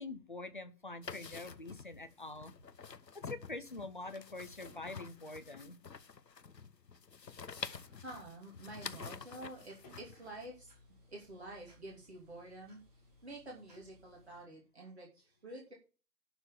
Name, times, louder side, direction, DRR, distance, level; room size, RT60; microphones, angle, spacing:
voice 1, 0.0-2.5 3.2-5.8, left 2 dB, 30° left, 9 dB, 0.8 m, -45 dB
sound 1, 1.0-10.5, left 6 dB, 75° left, 0.9 m, -48 dB
sound 2, 4.6-5.4 6.3-6.4 7.6-8.1 9.0-9.1 9.8-10.6, left 1 dB, 10° left, 2.1 m, -62 dB
sound 3, 7.2-14.4, left 2 dB, 25° right, 2.6 m, -65 dB
voice 2, 8.0-12.8 13.2-15.7, right 2 dB, 40° right, -1 dB, 2.8 m, -49 dB
12.0 x 4.4 x 7.4 m, 0.35 s
figure-of-eight pair, 155°, 50 cm